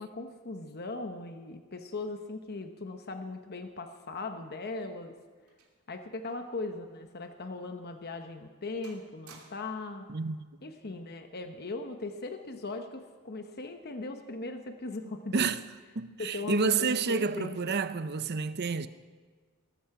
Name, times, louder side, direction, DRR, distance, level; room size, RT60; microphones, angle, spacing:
voice 1, 0.0-5.1 5.9-10.0 10.6-15.4 16.2-17.6, left 3 dB, 45° left, 1.0 m, -39 dB
sound 1, 5.0-6.6 6.9-7.1 7.7-7.9 8.3-8.6 8.8-9.9 10.9-11.2, right 5 dB, 75° right, 3.0 m, -58 dB
voice 2, 10.1-10.5 15.3-15.6 16.0-18.9, right 5 dB, 50° right, 0.6 m, -29 dB
19.5 x 14.5 x 4.9 m
head